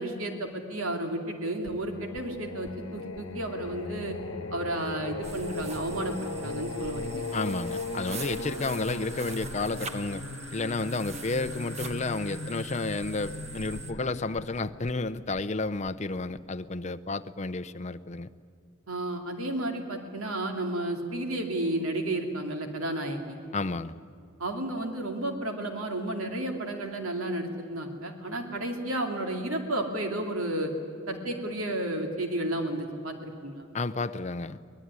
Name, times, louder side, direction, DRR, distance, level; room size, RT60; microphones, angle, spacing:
voice 1, 0.0-4.2 4.5-7.2 18.9-23.4 24.4-30.7 31.1-33.6, right 1 dB, 85° right, 4 dB, 2.6 m, -32 dB
Singing, 1.7-16.4, left 3 dB, 65° left, 1.3 m, -38 dB
sound 1, 5.2-13.9, right 4 dB, 30° right, 1.3 m, -43 dB
voice 2, 7.3-18.3 23.5-24.0 33.7-34.6, left 3 dB, 35° left, 12 dB, 0.6 m, -31 dB
23.5 x 19.5 x 9.7 m, 2.4 s
head